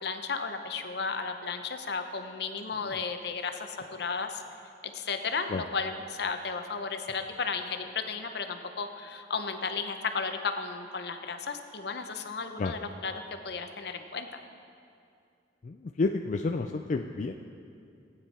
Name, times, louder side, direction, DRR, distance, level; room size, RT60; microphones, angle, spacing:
voice 1, 0.0-4.4 4.9-13.1 13.4-14.4, left 5 dB, 65° left, 7 dB, 0.8 m, -34 dB
voice 2, 15.6-17.3, left 3 dB, 45° left, 4 dB, 0.4 m, -30 dB
16.5 x 9.2 x 4.3 m, 2.5 s
head